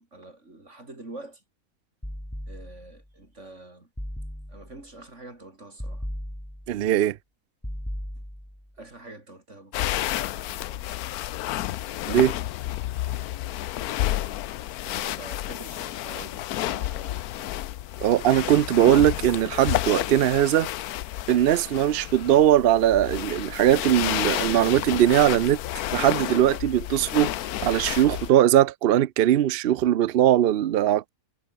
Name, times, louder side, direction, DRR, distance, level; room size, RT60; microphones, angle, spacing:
voice 1, 0.0-1.4 2.5-3.9 4.5-6.1 8.8-11.2 14.8-17.5, right 2 dB, 50° right, 5.5 m, -46 dB
sound 1, 2.0-3.0 4.0-4.9 5.8-6.9 7.6-8.7, equal, 5° left, 7.1 m, -36 dB
voice 2, 6.7-7.2 12.1-12.3 18.0-20.7 21.3-25.6 25.9-27.3 27.6-31.1, right 12 dB, 70° right, 0.5 m, -20 dB
sound 2, 9.7-28.3, left 14 dB, 85° left, 1.1 m, -30 dB
omnidirectional pair, 1.6 m